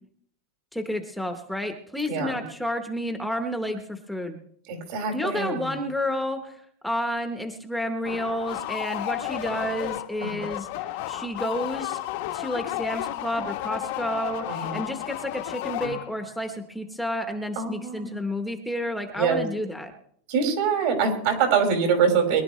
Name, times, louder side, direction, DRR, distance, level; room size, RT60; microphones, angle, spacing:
voice 1, 0.7-4.4 5.1-12.0 12.3-19.9, equal, ahead, 5 dB, 0.9 m, -30 dB
voice 2, 2.1-2.4 4.7-5.8 10.2-10.4 14.5-14.8 17.6-18.2 19.1-19.4 20.3-22.4, right 6 dB, 60° right, 3 dB, 4.4 m, -24 dB
sound 1, 8.0-16.4, left 14 dB, 60° left, 0.9 m, -33 dB
22.5 x 11.5 x 3.2 m, 0.64 s
supercardioid pair, 160°, 0 cm